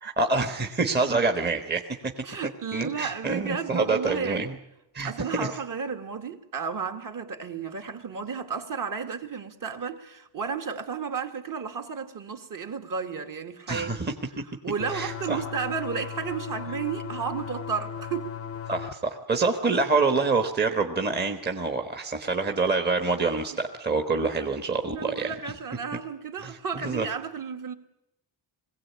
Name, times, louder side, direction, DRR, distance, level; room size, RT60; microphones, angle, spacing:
voice 1, 0.0-2.1 2.7-4.6 4.9-5.5 13.7-14.1 14.9-15.4 18.7-25.3 26.4-27.1, right 3 dB, 20° right, 1.3 m, -26 dB
voice 2, 2.2-4.5 5.0-13.9 14.6-18.3 24.2-24.3 24.9-27.7, right 6 dB, 40° right, 2.0 m, -33 dB
sound 1, 14.8-18.9, left 7 dB, 30° left, 0.8 m, -36 dB
22.0 x 17.0 x 8.5 m
wide cardioid pair, 160°, 48 cm